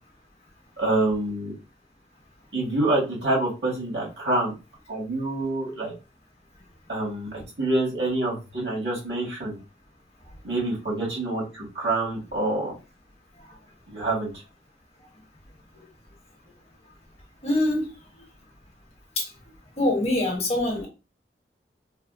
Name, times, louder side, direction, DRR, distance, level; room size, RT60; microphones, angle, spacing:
voice 1, 0.8-1.5 2.5-4.5 4.9-5.9 6.9-9.6 10.4-12.7 13.9-14.3, right 2 dB, 90° right, -3 dB, 2.0 m, -26 dB
voice 2, 17.4-17.9 19.2-19.3 19.8-20.9, left 1 dB, 35° left, -1 dB, 1.2 m, -24 dB
4.1 x 2.0 x 2.6 m, 0.29 s
head